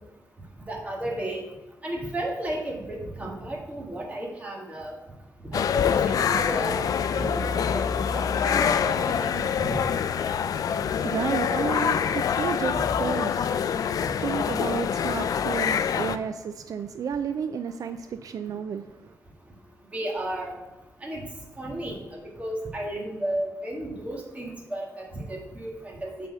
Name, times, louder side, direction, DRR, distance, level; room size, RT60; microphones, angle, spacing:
voice 1, 0.7-1.4 1.8-5.0 5.5-6.8 7.2-7.8 8.1-9.8 14.0-14.1 19.9-20.6 21.0-21.2 21.6-26.3, right 1 dB, 25° right, -1 dB, 1.8 m, -33 dB
sound 1, 5.5-16.2, left 7 dB, 80° left, 0.4 m, -25 dB
voice 2, 10.7-19.2, right 7 dB, 75° right, 10 dB, 0.4 m, -32 dB
8.0 x 4.3 x 6.6 m, 1.1 s
wide cardioid pair, 140°, 6 cm